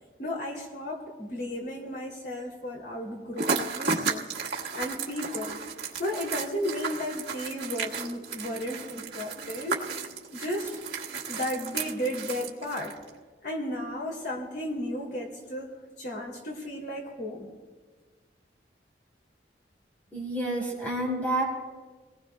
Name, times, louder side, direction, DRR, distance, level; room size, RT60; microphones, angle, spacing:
voice 1, 0.2-4.3 4.7-5.6 6.0-9.8 10.3-10.7 11.3-12.9 13.4-17.5, left 1 dB, 70° left, -1 dB, 2.7 m, -34 dB
sound 1, 3.3-13.1, right 5 dB, 70° right, 1.5 m, -34 dB
voice 2, 20.1-21.4, right 1 dB, 10° left, -2 dB, 4.3 m, -29 dB
27.5 x 19.0 x 2.2 m, 1.4 s
head